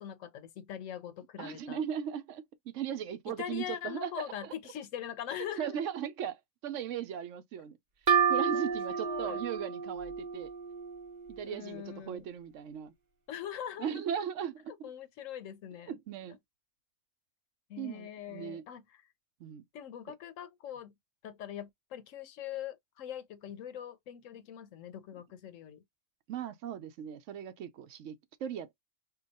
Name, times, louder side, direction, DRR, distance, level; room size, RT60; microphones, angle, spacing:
voice 1, 0.0-1.8 3.3-5.8 8.5-9.4 11.4-12.2 13.3-14.1 14.8-15.9 17.7-19.0 19.7-20.9 21.2-25.8, left 10 dB, 80° left, 1.0 m, -42 dB
voice 2, 1.4-4.5 5.6-7.8 8.3-10.5 11.3-12.9 13.8-14.7 15.9-16.4 17.8-18.6 19.4-19.6 26.3-28.7, right 9 dB, 75° right, 0.9 m, -38 dB
sound 1, 8.1-11.6, right 7 dB, 45° right, 0.7 m, -31 dB
2.9 x 2.3 x 4.0 m
omnidirectional pair, 1.3 m